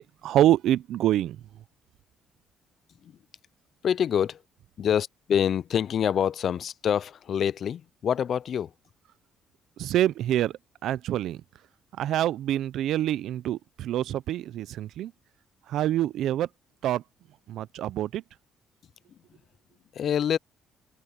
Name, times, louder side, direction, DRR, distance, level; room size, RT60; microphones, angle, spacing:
voice 1, 0.0-1.4 9.8-11.4 12.0-15.1 15.7-16.5 16.8-17.0 17.5-18.2, right 12 dB, 70° right, 0.5 m, -26 dB
voice 2, 3.8-4.4 4.8-8.7 19.9-20.4, left 8 dB, 50° left, 0.4 m, -26 dB
open air
cardioid pair, 115°, 0 cm